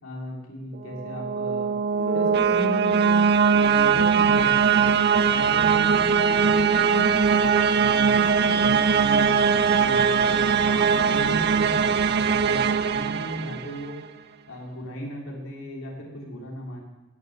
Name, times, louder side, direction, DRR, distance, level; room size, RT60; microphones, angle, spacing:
voice 1, 0.0-1.8 2.1-4.9 5.2-7.3 7.8-12.0 12.3-14.0 14.5-16.8, equal, 85° left, -1 dB, 3.3 m, -36 dB
sound 1, 0.9-13.9, right 6 dB, 50° right, 0.5 m, -21 dB
Guitar, 1.9-7.4, left 1 dB, 30° right, 2.7 m, -41 dB
17.0 x 6.8 x 7.1 m, 1.1 s
head